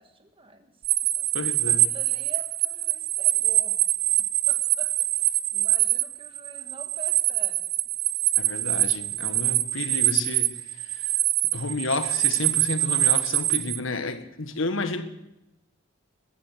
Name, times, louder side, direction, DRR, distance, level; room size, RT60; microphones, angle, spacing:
voice 1, 0.0-3.8 4.2-7.7, right 1 dB, 25° right, 1.6 m, -47 dB
sound 1, 0.8-13.8, right 13 dB, 50° right, 0.7 m, -24 dB
voice 2, 1.3-1.9 8.4-11.1 11.5-15.0, left 3 dB, 70° left, 1.5 m, -31 dB
14.0 x 12.5 x 7.9 m
head